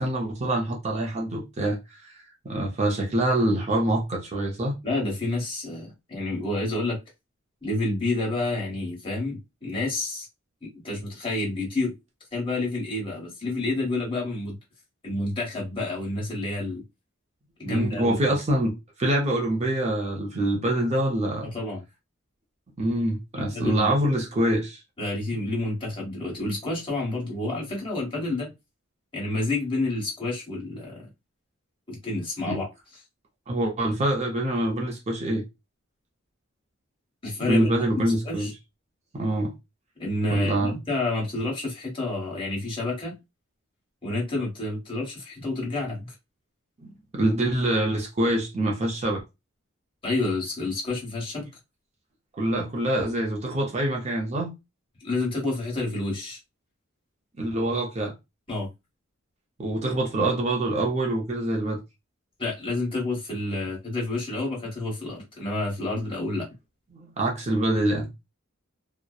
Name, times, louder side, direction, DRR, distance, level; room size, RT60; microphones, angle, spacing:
voice 1, 0.0-2.1 2.4-4.7 17.6-21.5 22.8-24.8 32.5-32.6 33.5-35.4 37.4-38.5 39.1-39.5 40.3-40.8 46.8-49.2 52.4-54.5 57.4-58.1 59.6-61.8 67.2-68.1, right 1 dB, 35° right, 0.5 m, -25 dB
voice 2, 4.8-7.0 7.6-10.3 10.6-11.9 12.3-14.6 15.0-16.8 17.6-18.4 21.5-21.8 23.4-23.9 25.0-28.5 29.1-31.1 31.9-32.7 37.2-37.7 38.0-38.5 40.0-43.2 44.0-46.1 50.0-51.5 55.0-56.4 58.5-58.7 62.4-66.5, left 2 dB, 25° left, 1.2 m, -29 dB
2.6 x 2.0 x 2.3 m
head